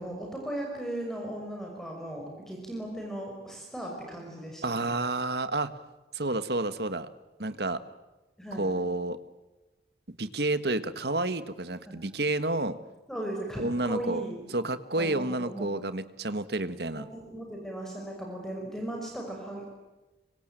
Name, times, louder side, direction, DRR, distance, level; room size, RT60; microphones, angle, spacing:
voice 1, 0.0-4.9 8.4-8.7 11.9-12.0 13.1-14.4 15.0-15.7 16.9-19.7, right 1 dB, ahead, 0 dB, 5.8 m, -37 dB
voice 2, 4.6-5.7 6.1-7.1 7.4-7.8 8.5-9.2 10.2-12.8 13.6-17.1, right 2 dB, 70° right, 12 dB, 1.7 m, -30 dB
25.5 x 25.0 x 9.1 m, 1.1 s
head